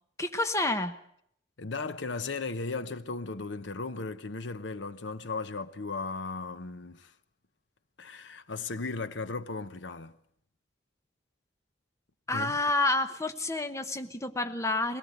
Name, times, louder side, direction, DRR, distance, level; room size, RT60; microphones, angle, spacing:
voice 1, 0.2-1.0 12.3-15.0, left 2 dB, 15° left, 1.0 m, -29 dB
voice 2, 1.6-7.1 8.0-10.1 12.3-12.5, left 3 dB, 75° left, 0.9 m, -36 dB
22.5 x 18.5 x 7.9 m
head